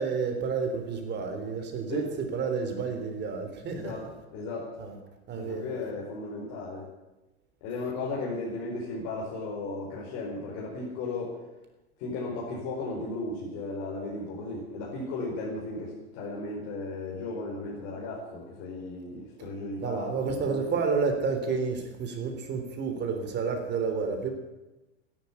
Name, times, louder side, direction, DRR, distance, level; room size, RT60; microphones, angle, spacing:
voice 1, 0.0-4.0 4.8-5.0 5.3-5.6 19.8-24.3, right 5 dB, 30° right, 5 dB, 3.4 m, -30 dB
voice 2, 3.7-4.0 4.3-4.7 5.3-6.9 7.6-11.3 12.0-20.6, left 2 dB, 55° left, -4 dB, 4.8 m, -35 dB
13.0 x 11.0 x 9.9 m, 1.0 s
supercardioid pair, 125°, 34 cm